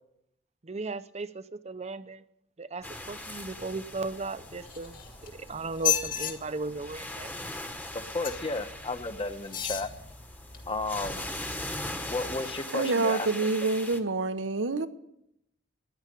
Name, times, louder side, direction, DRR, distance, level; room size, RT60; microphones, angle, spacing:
voice 1, 0.6-2.2 2.6-5.0 5.3-7.3, right 3 dB, 35° right, 0.7 m, -36 dB
sound 1, 2.8-12.4, equal, 90° left, 3.7 m, -50 dB
sound 2, 2.8-14.0, left 1 dB, 10° left, 1.2 m, -41 dB
sound 3, 4.6-5.3 5.7-6.3 8.2-8.6 9.4-9.9 10.5-10.6, left 11 dB, 45° left, 2.3 m, -31 dB
voice 2, 7.9-9.9 10.7-11.3 12.1-13.3, left 3 dB, 30° left, 1.1 m, -33 dB
voice 3, 12.7-14.9, right 3 dB, 90° right, 1.0 m, -27 dB
14.0 x 10.5 x 10.0 m
head